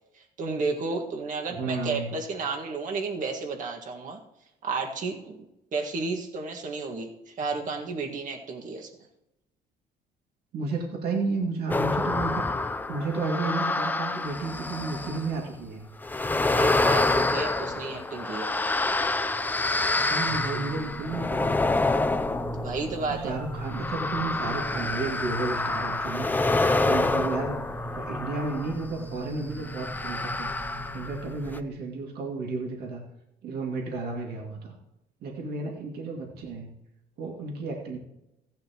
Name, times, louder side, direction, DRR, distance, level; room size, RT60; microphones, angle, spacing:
voice 1, 0.4-4.2 4.6-5.4 5.7-7.1 7.4-8.9 16.5-18.5 22.5-23.4, right 4 dB, 50° right, 2 dB, 1.8 m, -32 dB
voice 2, 1.5-2.1 10.5-15.8 20.1-21.6 23.2-26.5 26.8-27.7 27.9-33.0 33.4-34.7 35.2-36.7 37.2-38.0, right 3 dB, 65° right, 0 dB, 2.3 m, -32 dB
sound 1, 11.7-15.4 16.0-28.8 29.6-31.2 31.5-31.6, left 2 dB, 10° left, 0.6 m, -27 dB
sound 2, 20.3-31.6, right 1 dB, 25° right, 1.6 m, -40 dB
15.5 x 10.5 x 3.0 m, 0.91 s
cardioid pair, 110°, 17 cm